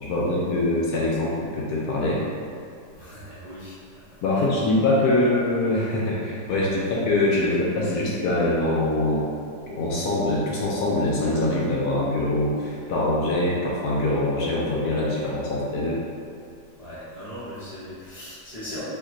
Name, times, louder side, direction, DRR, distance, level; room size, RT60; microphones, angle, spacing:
voice 1, 0.0-2.2 4.2-9.3 9.7-16.0, left 2 dB, 70° left, -5 dB, 1.0 m, -23 dB
voice 2, 2.9-3.8 4.3-4.5 16.8-18.8, left 1 dB, 45° right, -14 dB, 0.5 m, -39 dB
2.9 x 2.2 x 3.7 m, 2.5 s
omnidirectional pair, 1.9 m